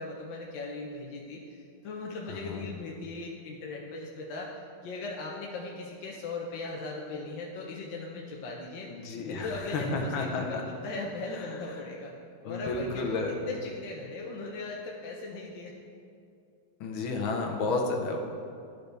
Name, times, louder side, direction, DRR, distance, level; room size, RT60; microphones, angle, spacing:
voice 1, 0.0-4.5 4.8-8.9 9.2-12.1 12.4-15.7, left 3 dB, 70° left, -2 dB, 1.3 m, -38 dB
voice 2, 2.3-2.6 8.9-10.6 12.4-13.3 16.8-18.2, left 3 dB, 90° left, 2 dB, 1.6 m, -31 dB
11.5 x 4.0 x 3.3 m, 2.4 s
omnidirectional pair, 2.2 m